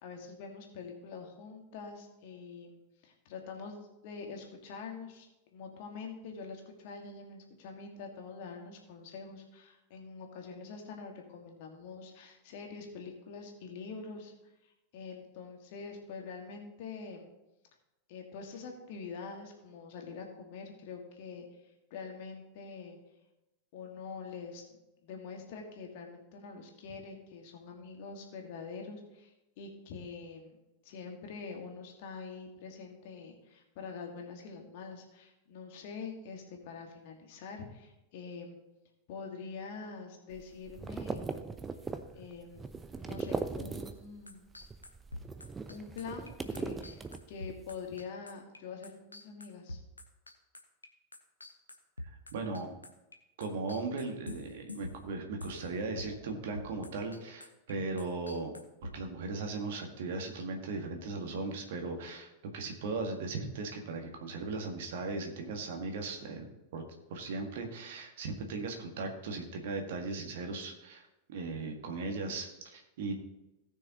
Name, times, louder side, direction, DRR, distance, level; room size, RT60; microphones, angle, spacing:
voice 1, 0.0-5.3 5.5-17.3 18.1-23.0 23.7-24.6 25.0-30.6 30.8-38.6 39.1-41.3 42.2-44.5 45.7-49.8, left 5 dB, 50° left, 2 dB, 1.8 m, -45 dB
sound 1, 40.3-44.2 44.5-47.6, right 4 dB, 15° right, 0.7 m, -39 dB
sound 2, 44.3-53.2 53.4-55.7 56.0-56.3 56.5-57.7 58.0-59.0, left 1 dB, 80° left, 1.0 m, -45 dB
voice 2, 52.0-52.8 53.4-58.5 58.8-66.8 67.1-73.1, right 3 dB, 55° right, 3 dB, 1.8 m, -38 dB
18.0 x 6.4 x 2.9 m, 0.96 s
figure-of-eight pair, 90°, 0 cm